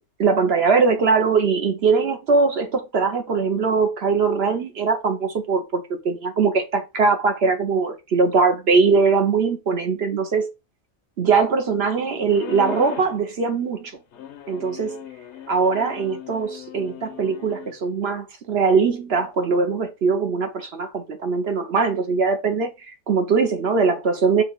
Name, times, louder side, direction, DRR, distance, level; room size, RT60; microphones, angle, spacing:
voice 1, 0.2-10.5 11.2-13.9 14.5-15.0 15.5-22.7 23.1-24.4, right 5 dB, 55° right, 0.9 m, -21 dB
sound 1, 12.3-13.2 14.1-17.8, left 10 dB, 60° left, 0.9 m, -38 dB
5.7 x 2.4 x 3.9 m
omnidirectional pair, 1.5 m